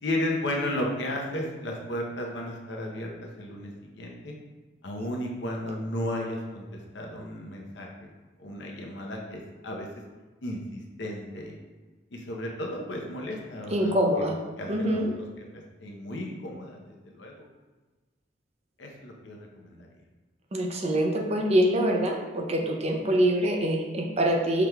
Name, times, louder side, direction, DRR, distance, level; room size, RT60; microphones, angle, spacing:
voice 1, 0.0-3.1 3.4-4.3 4.8-6.7 6.9-8.1 8.4-9.9 10.4-11.5 12.1-17.3 18.8-19.9, left 1 dB, 70° left, 0 dB, 0.7 m, -34 dB
voice 2, 13.7-14.4 14.7-15.1 20.5-24.7, equal, 35° right, 1 dB, 0.5 m, -25 dB
5.8 x 3.4 x 2.2 m, 1.3 s
head